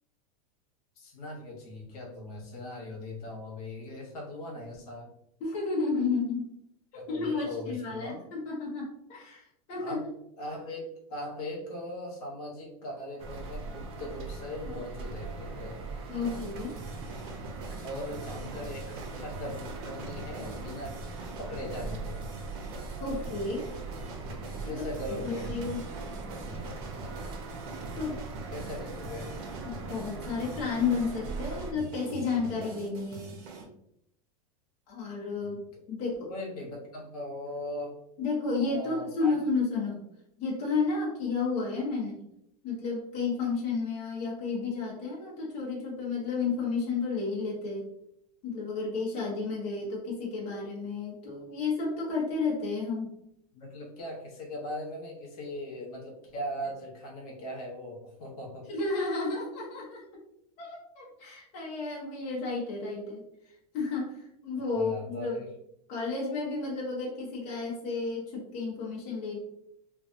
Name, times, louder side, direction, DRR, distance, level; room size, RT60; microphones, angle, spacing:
voice 1, 1.0-5.1 6.9-8.2 9.8-10.0 10.4-10.8 11.1-15.8 17.8-20.9 21.4-22.2 24.6-25.5 28.5-29.4 35.4-35.5 36.3-38.0 38.6-39.4 53.5-58.6 64.5-65.5, left 1 dB, 75° left, -1 dB, 1.1 m, -39 dB
voice 2, 5.4-6.5 7.1-10.0 16.1-16.8 23.0-23.7 24.6-25.8 27.9-28.2 29.6-33.4 34.9-35.6 35.9-36.3 38.2-40.0 40.4-42.2 42.6-47.9 48.4-53.1 58.7-60.0 60.6-65.4 65.9-69.4, left 4 dB, 35° left, -4 dB, 0.8 m, -32 dB
sound 1, 13.2-31.7, right 3 dB, 30° right, 0.3 m, -40 dB
sound 2, 16.2-33.6, right 2 dB, 85° right, 0.7 m, -44 dB
sound 3, 25.4-28.2 28.4-32.1, right 2 dB, 5° right, 1.0 m, -48 dB
2.4 x 2.3 x 2.5 m, 0.76 s
supercardioid pair, 150°, 19 cm